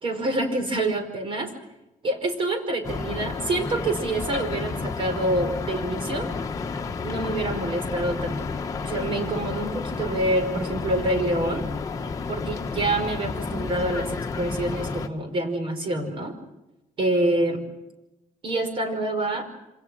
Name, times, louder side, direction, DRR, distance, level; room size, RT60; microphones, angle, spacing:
voice 1, 0.0-1.5 2.0-6.3 7.0-8.5 8.8-11.7 12.3-16.3 17.0-17.6 18.4-19.5, right 1 dB, 40° right, 7 dB, 5.2 m, -26 dB
sound 1, 2.8-15.1, left 4 dB, 25° left, 1.6 m, -31 dB
28.0 x 26.5 x 6.3 m, 0.96 s
cardioid pair, 170°, 13 cm